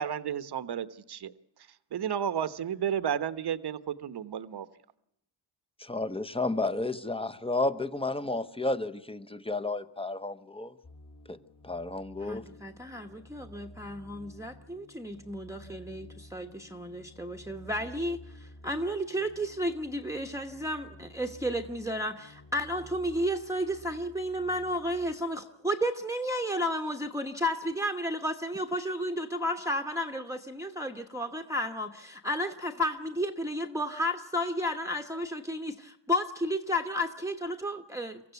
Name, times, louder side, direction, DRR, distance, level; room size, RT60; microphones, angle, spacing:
voice 1, 0.0-1.3 1.9-4.7, right 8 dB, 50° right, 13 dB, 1.1 m, -32 dB
voice 2, 5.8-10.7 11.3-11.4 11.6-12.5, left 2 dB, 10° left, 12 dB, 0.9 m, -32 dB
sound 1, 10.8-25.2, left 1 dB, 45° left, 2.9 m, -52 dB
voice 3, 12.2-38.3, equal, 5° right, 4 dB, 1.1 m, -32 dB
24.5 x 15.0 x 8.2 m, 0.79 s
cardioid pair, 80°, 50 cm